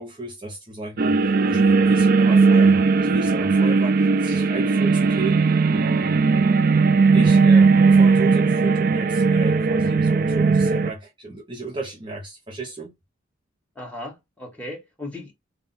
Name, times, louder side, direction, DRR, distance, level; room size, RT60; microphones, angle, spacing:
voice 1, 0.0-6.2 7.1-12.9, right 2 dB, 25° right, 0.8 m, -34 dB
sound 1, 1.0-10.9, right 4 dB, 45° right, 0.4 m, -17 dB
voice 2, 13.7-15.3, left 1 dB, 5° left, 1.6 m, -36 dB
3.8 x 2.3 x 4.1 m
head